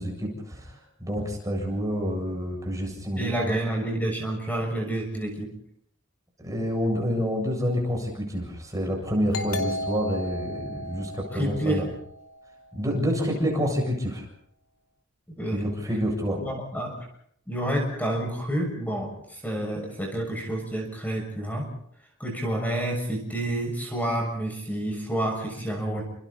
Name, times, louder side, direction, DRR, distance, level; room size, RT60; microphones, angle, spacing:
voice 1, 0.0-3.5 6.4-11.8 12.7-14.2 15.5-16.4, equal, 15° right, 0 dB, 7.6 m, -28 dB
voice 2, 3.2-5.5 11.3-11.9 15.4-15.6 15.9-16.0 16.4-17.1 17.5-21.7 22.2-26.0, right 1 dB, 10° left, 1 dB, 6.7 m, -29 dB
Doorbell, 9.3-12.7, left 1 dB, 85° left, 3.2 m, -34 dB
30.0 x 27.5 x 4.3 m, 0.67 s
head